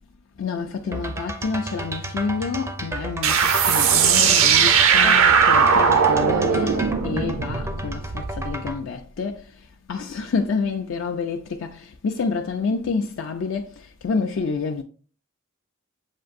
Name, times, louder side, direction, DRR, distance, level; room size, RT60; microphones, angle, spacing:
voice 1, 0.4-14.8, left 4 dB, 65° left, 0.4 m, -28 dB
sound 1, 0.9-8.8, right 1 dB, 15° right, 0.4 m, -32 dB
sound 2, 3.2-8.5, right 6 dB, 70° right, 0.5 m, -18 dB
7.3 x 2.6 x 2.5 m
head